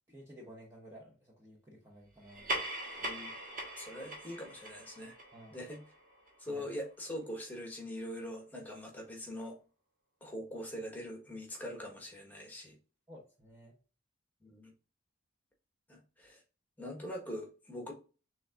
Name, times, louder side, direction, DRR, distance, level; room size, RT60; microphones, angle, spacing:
voice 1, 0.1-2.6 3.0-3.1 5.3-5.6 6.5-6.7 13.1-13.7, equal, 15° right, -3 dB, 0.8 m, -54 dB
sound 1, 2.2-7.1, right 1 dB, 45° right, 1.3 m, -41 dB
voice 2, 3.7-5.1 5.5-5.8 6.4-9.6 10.2-12.7 14.4-14.7 15.9-16.4 16.8-17.9, equal, 10° left, 0 dB, 1.2 m, -43 dB
6.1 x 3.4 x 2.5 m, 0.34 s
head